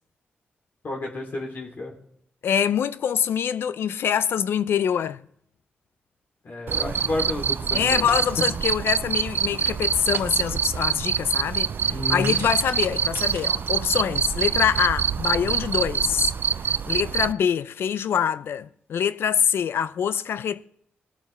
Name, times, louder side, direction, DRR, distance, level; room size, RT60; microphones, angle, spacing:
voice 1, 0.8-1.9 6.4-8.1 11.9-12.4, left 2 dB, 55° left, 2.6 m, -31 dB
voice 2, 2.4-5.2 7.7-16.3 16.9-20.7, left 8 dB, 80° left, 0.4 m, -25 dB
Cricket, 6.7-17.3, right 7 dB, 60° right, 0.3 m, -25 dB
Shatter, 8.1-8.5 10.1-10.6 12.2-13.9, right 6 dB, 90° right, 1.4 m, -38 dB
19.5 x 7.2 x 3.2 m
cardioid pair, 75°, 4 cm